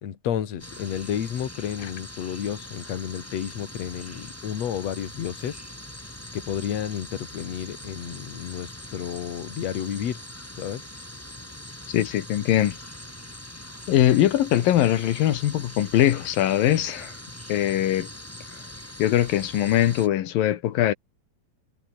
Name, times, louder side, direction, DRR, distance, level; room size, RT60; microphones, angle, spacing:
voice 1, 0.0-5.6 6.3-10.2 10.6-10.8, left 9 dB, 55° left, 3.0 m, -31 dB
sound 1, 0.6-20.1, left 1 dB, 5° left, 3.3 m, -42 dB
voice 2, 11.9-12.8 13.9-17.1 17.5-18.1 19.0-20.9, left 12 dB, 85° left, 3.2 m, -21 dB
omnidirectional pair, 3.9 m